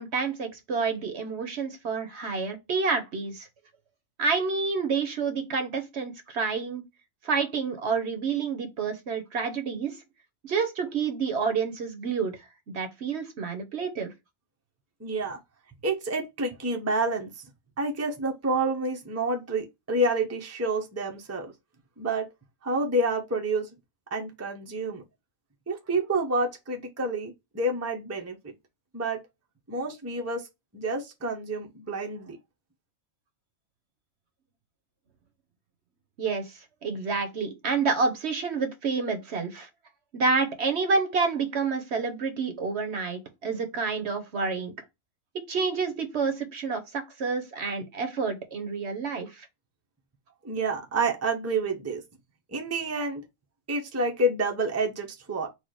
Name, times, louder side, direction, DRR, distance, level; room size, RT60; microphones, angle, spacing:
voice 1, 0.0-3.5 4.2-6.8 7.2-10.0 10.4-12.4 12.7-14.1 36.2-39.7 40.1-44.7 45.3-49.5, right 4 dB, 55° right, 1.1 m, -29 dB
voice 2, 15.0-15.4 15.8-17.5 17.8-21.5 22.0-22.3 22.6-23.7 24.1-25.0 25.7-28.4 28.9-29.2 29.7-30.5 30.7-32.4 50.4-52.0 52.5-53.2 53.7-55.5, right 2 dB, 15° right, 0.7 m, -28 dB
4.5 x 2.4 x 4.7 m
omnidirectional pair, 1.4 m